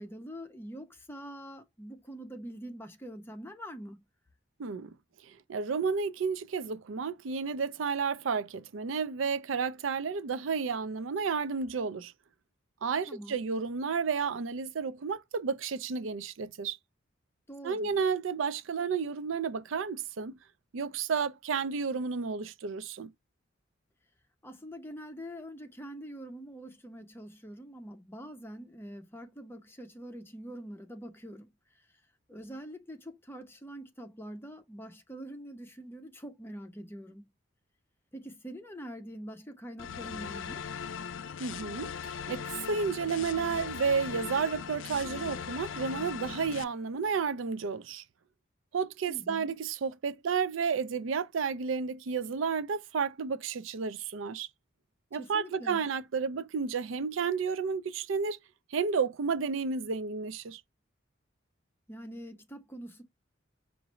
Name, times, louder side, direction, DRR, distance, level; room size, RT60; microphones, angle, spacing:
voice 1, 0.0-4.0 13.1-13.4 17.5-18.0 24.4-32.0 32.3-37.3 38.1-40.7 49.1-49.5 55.1-55.9 61.9-63.0, equal, 10° left, 0.8 m, -44 dB
voice 2, 4.6-4.9 5.2-12.1 12.8-16.8 17.6-20.4 20.7-23.1 41.4-48.0 48.7-54.5 55.1-58.4 58.7-60.6, right 5 dB, 85° right, 0.5 m, -32 dB
sound 1, 39.8-46.6, left 7 dB, 75° left, 0.4 m, -39 dB
4.8 x 2.6 x 3.0 m
head